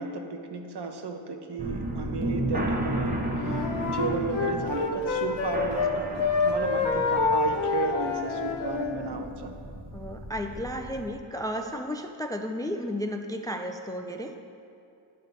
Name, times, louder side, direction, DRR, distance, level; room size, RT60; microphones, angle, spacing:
voice 1, 0.0-9.5, right 4 dB, 60° right, 5 dB, 0.8 m, -34 dB
sound 1, 1.6-11.1, right 1 dB, 20° right, 0.9 m, -34 dB
Wind instrument woodwind instrument, 3.3-5.9 6.2-8.9, left 4 dB, 85° left, 0.9 m, -27 dB
voice 2, 9.9-14.3, equal, 10° left, 4 dB, 0.3 m, -33 dB
9.7 x 5.3 x 4.0 m, 2.6 s
cardioid pair, 75°, 45 cm